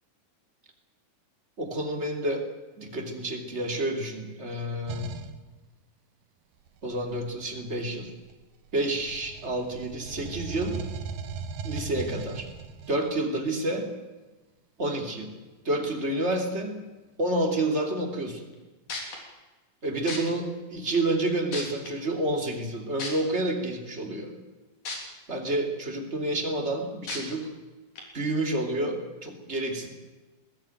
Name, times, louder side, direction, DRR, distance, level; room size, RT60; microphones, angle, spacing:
voice 1, 1.6-2.5 2.8-5.2 6.8-8.1 8.7-10.8 11.6-12.5 12.9-13.9 14.8-15.4 15.6-16.9 17.2-18.5 19.8-24.3 25.3-27.5 28.1-29.9, right 1 dB, 20° right, 2 dB, 2.6 m, -29 dB
sound 1, 4.9-5.4 6.7-8.6 9.0-13.1, right 5 dB, 75° right, 2.8 m, -38 dB
sound 2, 18.5-18.6 18.9-19.2 20.1-20.2 20.9-21.0 21.5-21.9 23.0-23.1 24.9-25.0 25.5-25.6 27.1-27.2 28.0-28.1, left 3 dB, 55° left, 4.8 m, -33 dB
21.0 x 16.0 x 9.1 m, 1.2 s
omnidirectional pair, 4.1 m